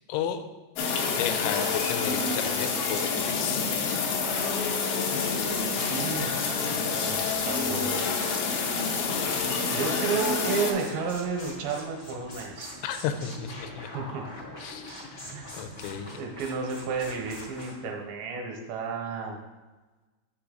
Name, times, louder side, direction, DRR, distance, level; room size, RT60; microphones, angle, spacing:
voice 1, 0.1-0.4 1.2-3.7 12.8-13.9 14.6-15.3 15.5-16.2, left 9 dB, 90° left, 8 dB, 3.0 m, -33 dB
sound 1, 0.8-10.7, left 5 dB, 75° left, 2.3 m, -28 dB
sound 2, 3.7-17.7, left 1 dB, 45° left, 0.7 m, -43 dB
voice 2, 5.7-6.3 6.6-8.4 9.0-9.1 9.7-12.7 13.9-14.2 15.3-15.8 16.1-19.4, right 5 dB, 80° right, 1 dB, 3.0 m, -32 dB
7.0 x 6.7 x 3.8 m, 1.2 s
omnidirectional pair, 5.3 m